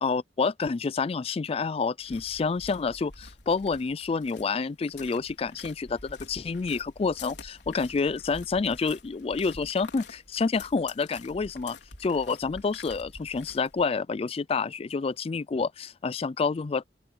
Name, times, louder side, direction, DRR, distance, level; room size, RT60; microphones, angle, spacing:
voice 1, 0.0-16.9, left 4 dB, 35° left, 0.4 m, -28 dB
sound 1, 2.0-13.9, left 4 dB, 85° left, 4.1 m, -47 dB
open air
head